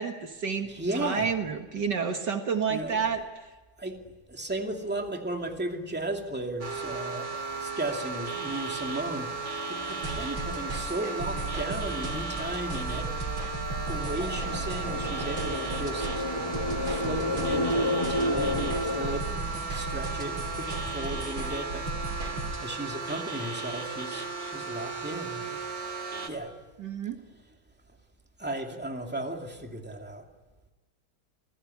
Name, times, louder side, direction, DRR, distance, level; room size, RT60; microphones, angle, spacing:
voice 1, 0.0-3.2 26.8-27.2, right 6 dB, 60° right, 5 dB, 2.3 m, -30 dB
voice 2, 0.7-1.3 2.7-3.0 3.8-4.0 4.3-13.3 13.9-16.2 16.8-22.3 22.6-25.6 26.2-26.5 28.4-30.3, right 1 dB, 5° right, 2 dB, 2.5 m, -35 dB
sound 1, 6.6-26.3, right 4 dB, 35° right, 2.8 m, -35 dB
sound 2, 9.9-22.6, right 2 dB, 90° right, 4.4 m, -36 dB
sound 3, 14.1-19.2, left 1 dB, 15° left, 1.1 m, -30 dB
28.0 x 20.5 x 9.9 m, 1.2 s
omnidirectional pair, 2.1 m